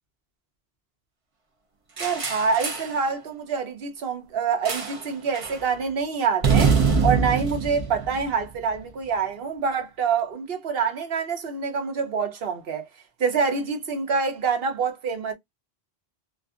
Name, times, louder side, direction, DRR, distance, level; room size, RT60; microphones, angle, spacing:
sound 1, 2.0-3.0 4.7-5.1 5.3-5.6 6.4-8.8, right 5 dB, 40° right, 0.6 m, -24 dB
voice 1, 2.0-6.7 7.0-12.9 13.2-15.3, right 5 dB, 70° right, 1.0 m, -26 dB
2.5 x 2.5 x 2.3 m
omnidirectional pair, 1.1 m